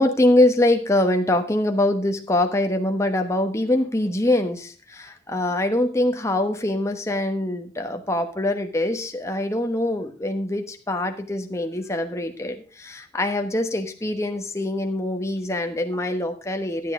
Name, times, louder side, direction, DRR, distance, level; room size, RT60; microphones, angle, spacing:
voice 1, 0.0-16.9, left 1 dB, 15° left, 5 dB, 1.1 m, -23 dB
12.5 x 9.0 x 3.7 m, 0.38 s
head